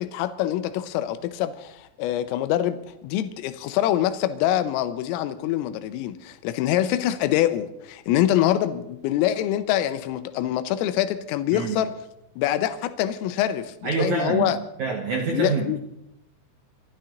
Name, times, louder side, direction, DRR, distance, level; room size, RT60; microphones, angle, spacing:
voice 1, 0.0-2.8 3.0-11.9 12.4-14.6 15.3-15.8, left 12 dB, 90° left, 10 dB, 3.5 m, -25 dB
voice 2, 11.5-11.8 13.8-15.8, right 5 dB, 90° right, 2 dB, 1.6 m, -26 dB
28.5 x 12.5 x 3.9 m, 0.84 s
omnidirectional pair, 5.8 m